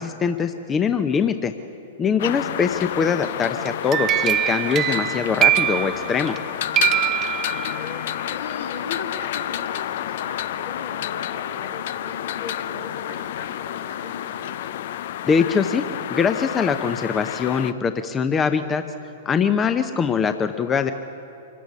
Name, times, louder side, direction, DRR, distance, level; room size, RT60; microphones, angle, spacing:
voice 1, 0.0-1.5 2.0-6.4 15.2-15.8 16.1-18.8 19.3-20.9, left 6 dB, 20° left, 9 dB, 0.8 m, -22 dB
sound 1, 2.2-17.7, left 11 dB, 60° left, 0.5 m, -30 dB
voice 2, 2.3-3.2 7.5-14.7, left 4 dB, 75° left, 1 dB, 3.3 m, -38 dB
sound 2, 3.7-6.4 6.7-8.0, right 13 dB, 30° right, 0.5 m, -23 dB
25.5 x 14.5 x 8.5 m, 2.9 s
hypercardioid pair, 110°, 0 cm